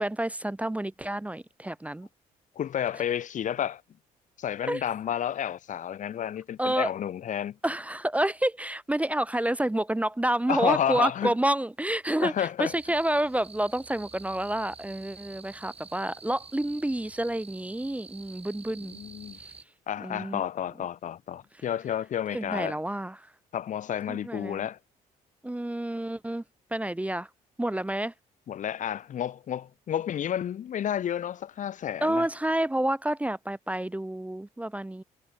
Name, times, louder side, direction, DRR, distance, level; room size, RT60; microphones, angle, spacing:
voice 1, 0.0-2.1 4.7-4.8 6.6-6.9 7.6-19.0 20.0-20.4 22.3-23.2 24.1-24.7 25.4-26.4 26.7-27.3 27.6-28.1 32.0-35.0, right 1 dB, 10° right, 0.4 m, -29 dB
voice 2, 2.6-3.8 4.4-7.6 10.5-11.3 12.2-12.7 18.8-19.4 19.9-22.8 23.5-24.8 28.5-32.3, left 10 dB, 45° left, 0.5 m, -31 dB
sound 1, 12.7-19.6, right 4 dB, 35° right, 2.9 m, -48 dB
hypercardioid pair, 55°, 18 cm